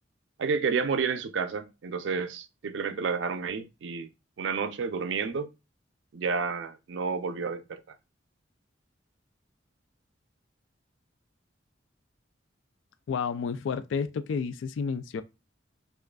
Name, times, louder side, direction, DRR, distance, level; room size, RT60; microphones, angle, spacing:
voice 1, 0.4-4.1 4.4-5.5 6.1-7.8, right 5 dB, 75° right, 0.4 m, -30 dB
voice 2, 13.1-15.2, left 5 dB, 90° left, 0.3 m, -31 dB
4.7 x 2.4 x 2.2 m
head